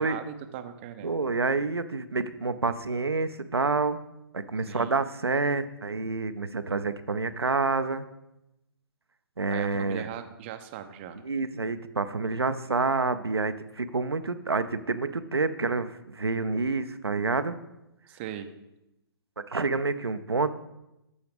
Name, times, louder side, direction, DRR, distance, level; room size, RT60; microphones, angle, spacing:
voice 1, 0.0-1.1 4.7-5.0 9.5-11.2 18.1-18.5, right 10 dB, 30° right, 8 dB, 0.5 m, -39 dB
voice 2, 1.0-4.0 4.3-8.1 9.4-10.1 11.2-17.6 19.5-20.5, right 3 dB, 90° right, 10 dB, 0.5 m, -28 dB
13.0 x 4.7 x 3.4 m, 0.89 s
figure-of-eight pair, 130°, 13 cm